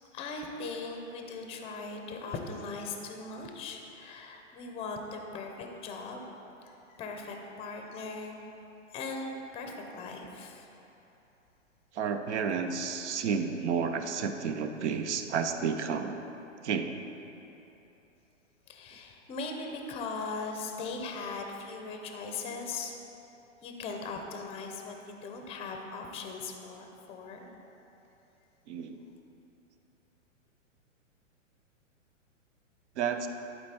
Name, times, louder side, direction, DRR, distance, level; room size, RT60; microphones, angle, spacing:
voice 1, 0.1-6.3 6.6-8.4 8.9-10.7 18.7-22.9 23.6-27.5, left 3 dB, 15° left, 3 dB, 0.6 m, -39 dB
voice 2, 11.9-16.2 16.6-17.0 28.7-29.0 33.0-33.3, right 6 dB, 60° right, 8 dB, 0.7 m, -31 dB
11.0 x 4.5 x 4.3 m, 3.0 s
hypercardioid pair, 130°, 39 cm